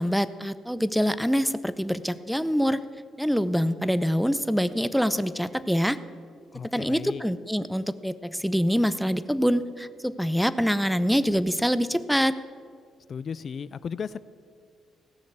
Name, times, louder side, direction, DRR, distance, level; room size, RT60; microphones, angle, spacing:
voice 1, 0.0-2.8 3.2-6.0 6.6-12.3, equal, ahead, 15 dB, 0.5 m, -25 dB
voice 2, 6.5-7.2 13.1-14.2, left 6 dB, 50° left, 18 dB, 0.3 m, -35 dB
15.0 x 6.4 x 8.4 m, 2.1 s
cardioid pair, 90°, 0 cm